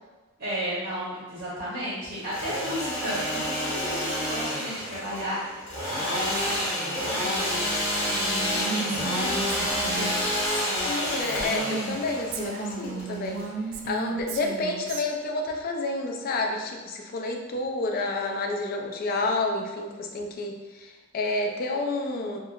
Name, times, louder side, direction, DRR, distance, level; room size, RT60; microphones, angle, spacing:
voice 1, 0.4-5.7 5.9-7.7 8.0-10.3, equal, 60° right, -8 dB, 0.8 m, -34 dB
Engine / Sawing, 2.1-13.8, left 1 dB, 85° left, 1.4 m, -29 dB
Female speech woman speaking, 8.5-12.0 12.3-15.0, right 4 dB, 80° right, 0.3 m, -34 dB
voice 2, 10.7-13.4 13.9-22.4, left 2 dB, 50° left, 2 dB, 0.4 m, -29 dB
3.7 x 2.0 x 2.3 m, 1.2 s
head